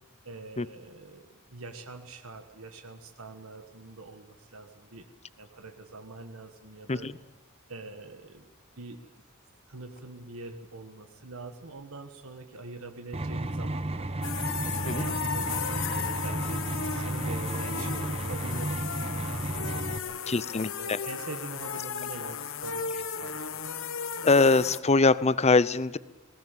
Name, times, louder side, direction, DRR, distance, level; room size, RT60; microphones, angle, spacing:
voice 1, 0.2-5.1 5.4-7.1 7.7-8.5 8.8-9.1 9.7-14.1 14.5-18.9 19.3-23.7, right 3 dB, 75° right, 6 dB, 1.5 m, -44 dB
sound 1, 13.1-20.0, right 2 dB, 30° right, 1.1 m, -33 dB
sound 2, 14.2-24.8, left 6 dB, 65° left, 1.2 m, -35 dB
voice 2, 20.3-21.0 24.2-26.0, left 3 dB, 30° left, 18 dB, 0.7 m, -23 dB
19.5 x 18.5 x 9.0 m, 1.2 s
head